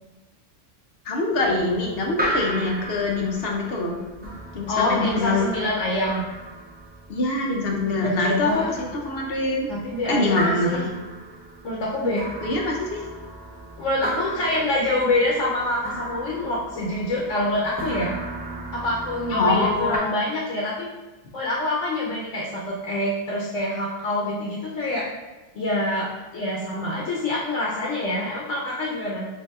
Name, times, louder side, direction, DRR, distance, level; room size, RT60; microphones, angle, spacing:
voice 1, 1.0-4.0 4.5-5.4 7.1-9.7 10.1-10.8 12.4-13.1 19.3-20.1, left 2 dB, 55° left, 0 dB, 0.8 m, -24 dB
sound 1, 1.3-20.0, right 1 dB, 10° right, 0.5 m, -35 dB
voice 2, 4.7-6.2 8.0-8.7 9.7-10.8 11.6-12.3 13.8-18.1 18.7-20.9 21.3-25.1 25.5-29.3, left 1 dB, 80° left, -4 dB, 1.1 m, -26 dB
6.8 x 2.7 x 2.4 m, 1.1 s
omnidirectional pair, 1.3 m